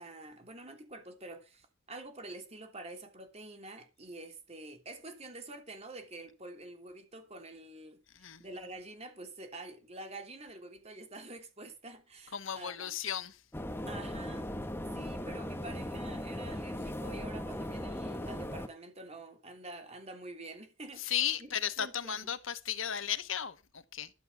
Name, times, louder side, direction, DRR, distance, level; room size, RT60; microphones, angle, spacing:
voice 1, 0.0-12.9 13.8-14.5 14.9-22.3, right 2 dB, 30° right, 3.1 m, -47 dB
voice 2, 8.1-8.4 12.3-13.4 21.0-24.1, left 9 dB, 75° left, 1.1 m, -35 dB
sound 1, 13.5-18.7, left 1 dB, 10° left, 1.2 m, -38 dB
13.0 x 6.8 x 7.2 m
head